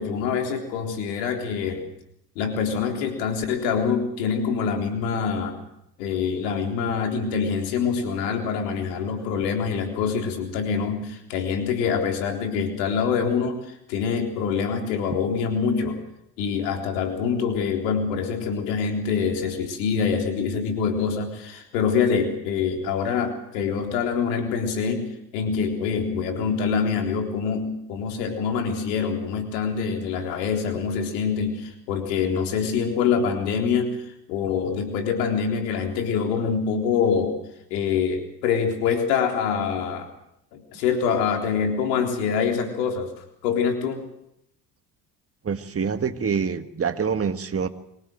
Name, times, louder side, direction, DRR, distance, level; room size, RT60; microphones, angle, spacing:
voice 1, 0.0-1.9 2.4-5.6 6.0-16.0 16.4-34.0 34.3-37.4 37.7-40.1 40.5-43.1 43.4-44.0, left 6 dB, 85° left, 4 dB, 3.9 m, -25 dB
voice 2, 45.4-47.7, right 6 dB, 30° right, 9 dB, 1.8 m, -26 dB
24.5 x 17.0 x 7.8 m, 0.78 s
hypercardioid pair, 65°, 48 cm